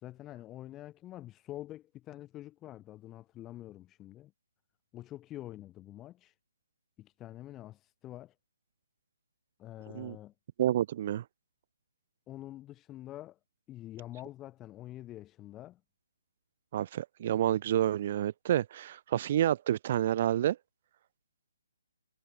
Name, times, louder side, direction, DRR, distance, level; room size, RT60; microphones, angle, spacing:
voice 1, 0.0-4.3 4.9-6.3 7.0-8.3 9.6-10.3 12.3-13.4 13.7-15.8, left 14 dB, 15° left, 3.8 m, -46 dB
voice 2, 10.6-11.2 16.7-20.6, right 11 dB, 40° right, 0.5 m, -29 dB
figure-of-eight pair, 140°, 0 cm